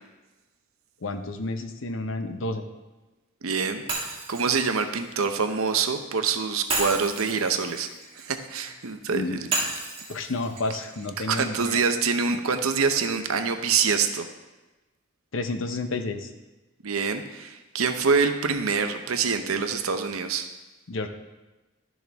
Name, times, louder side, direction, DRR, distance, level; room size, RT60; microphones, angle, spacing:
voice 1, 1.0-2.6 9.1-9.4 10.1-11.8 15.3-16.3 20.9-21.1, left 2 dB, 65° left, 7 dB, 0.8 m, -30 dB
voice 2, 3.4-7.9 8.2-9.5 11.2-14.2 16.8-20.5, right 5 dB, 85° right, 7 dB, 0.8 m, -25 dB
Shatter, 3.9-5.9 6.7-8.8 9.5-11.6, right 3 dB, 25° right, 1.7 m, -33 dB
12.5 x 6.3 x 3.5 m, 1.1 s
head